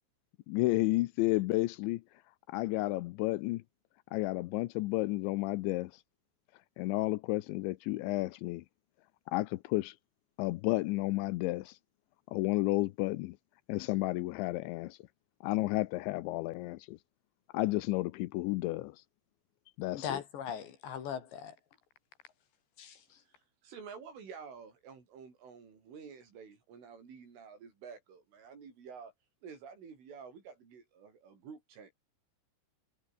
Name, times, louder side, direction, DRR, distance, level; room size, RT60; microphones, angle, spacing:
voice 1, 0.5-2.0 2.5-3.6 4.1-5.9 6.8-8.6 9.3-9.9 10.4-11.7 12.3-13.4 13.7-15.0 15.4-17.0 17.5-18.9 19.8-20.2, left 19 dB, 85° left, 2.9 m, -32 dB
voice 2, 19.9-21.5 22.8-23.0, left 8 dB, 65° left, 5.4 m, -39 dB
voice 3, 23.3-29.1 29.4-31.9, right 6 dB, 90° right, 8.6 m, -50 dB
omnidirectional pair, 5.5 m